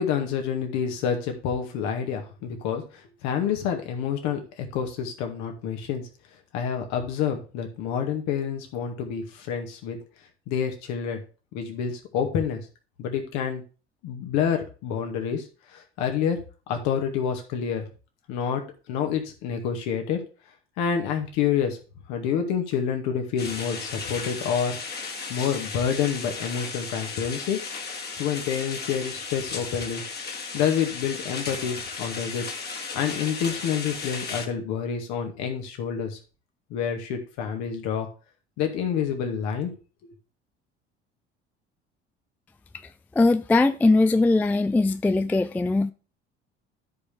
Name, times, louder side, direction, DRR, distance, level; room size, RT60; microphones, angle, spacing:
voice 1, 0.0-6.0 6.5-10.0 10.5-11.2 11.5-12.6 13.0-13.6 14.0-15.4 15.7-16.4 16.7-17.8 18.3-18.6 18.9-20.2 20.8-21.8 22.1-24.8 25.3-27.6 28.2-30.0 30.5-32.5 32.9-36.2 36.7-38.1 38.6-39.8, left 7 dB, 55° left, 2.0 m, -28 dB
sound 1, 23.4-34.5, left 4 dB, 30° left, 2.0 m, -35 dB
voice 2, 43.2-45.9, left 2 dB, 5° left, 0.3 m, -20 dB
13.5 x 5.1 x 3.4 m
figure-of-eight pair, 60°, 33 cm